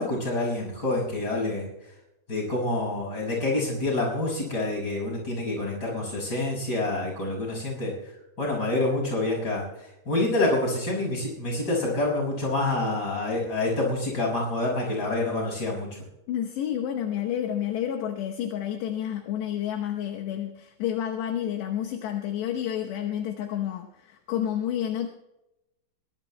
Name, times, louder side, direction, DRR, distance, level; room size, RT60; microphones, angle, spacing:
voice 1, 0.0-1.7 2.3-8.1 8.4-16.0, left 2 dB, 20° left, -2 dB, 6.3 m, -27 dB
voice 2, 16.3-25.1, left 10 dB, 75° left, 3 dB, 2.7 m, -30 dB
22.5 x 21.0 x 2.2 m, 0.94 s
omnidirectional pair, 5.8 m